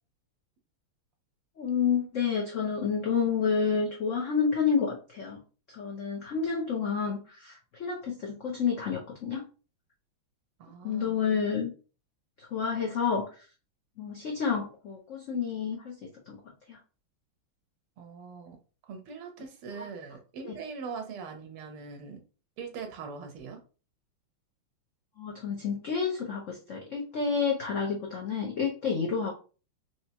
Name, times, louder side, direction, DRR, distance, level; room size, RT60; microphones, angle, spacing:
voice 1, 1.6-5.4 5.7-9.4 10.8-11.7 12.4-13.4 14.0-16.4 16.7-16.8 19.8-19.9 20.4-20.5 25.2-29.3, left 6 dB, 75° left, 0.7 m, -29 dB
voice 2, 10.6-11.2 18.0-18.6 18.8-22.2 22.6-23.6, right 5 dB, 85° right, 1.8 m, -41 dB
4.6 x 3.0 x 2.8 m
omnidirectional pair, 2.4 m